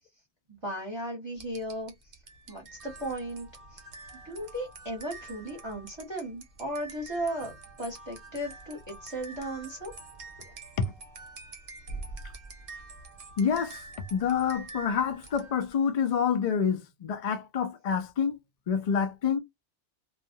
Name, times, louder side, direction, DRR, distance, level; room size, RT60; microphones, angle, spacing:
voice 1, 0.6-1.9 2.5-3.8 4.2-7.5 7.8-9.9, right 1 dB, 25° right, 0.9 m, -36 dB
sound 1, 1.4-15.8, right 3 dB, 55° right, 0.9 m, -46 dB
voice 2, 13.4-13.8 14.1-18.4 18.7-19.4, left 7 dB, 60° left, 0.4 m, -27 dB
2.3 x 2.0 x 2.6 m
omnidirectional pair, 1.2 m